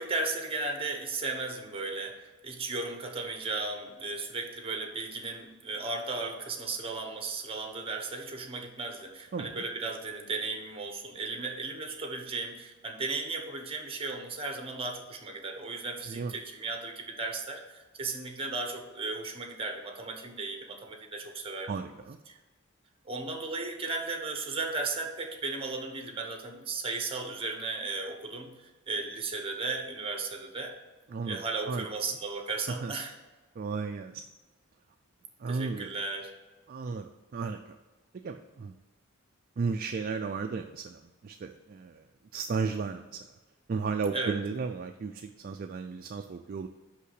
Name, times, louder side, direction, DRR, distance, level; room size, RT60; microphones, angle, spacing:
voice 1, 0.0-21.7 22.3-22.4 23.0-30.7 31.3-33.1 35.5-36.3 44.1-44.4, right 3 dB, 25° right, 4 dB, 1.1 m, -35 dB
voice 2, 9.3-9.6 16.1-16.3 21.7-22.2 31.1-31.4 31.7-31.9 32.7-32.9 33.6-34.2 35.4-35.9 36.7-37.8 38.2-38.7 39.6-42.1 42.3-43.3 43.7-46.7, right 4 dB, 45° right, 6 dB, 0.3 m, -34 dB
5.9 x 5.6 x 6.4 m, 1.2 s
head